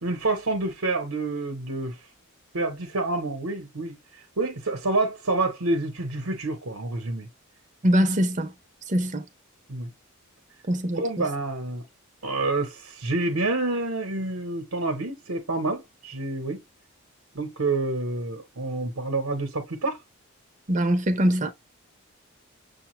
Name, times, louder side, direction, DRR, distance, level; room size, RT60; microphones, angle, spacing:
voice 1, 0.0-2.0 2.5-7.3 9.7-9.9 10.9-11.8 12.2-16.6 17.3-20.0, right 2 dB, 75° right, 1.0 m, -28 dB
voice 2, 7.8-8.5 8.9-9.3 10.7-11.3 20.7-21.5, equal, 35° right, 0.8 m, -23 dB
6.6 x 2.3 x 3.1 m
head